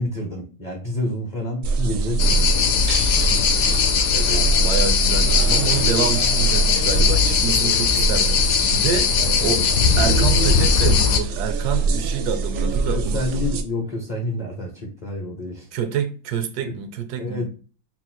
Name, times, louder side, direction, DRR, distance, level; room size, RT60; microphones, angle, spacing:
voice 1, 0.0-2.5 12.9-15.7 16.7-16.8 17.2-17.4, left 1 dB, 45° left, 0.6 m, -28 dB
sound 1, 1.6-13.6, right 3 dB, 90° right, 0.7 m, -24 dB
sound 2, 2.2-11.2, left 6 dB, 75° left, 1.1 m, -20 dB
voice 2, 4.1-9.7 10.0-13.4 15.7-17.5, right 7 dB, 70° right, 1.0 m, -27 dB
4.0 x 2.0 x 4.3 m
omnidirectional pair, 2.0 m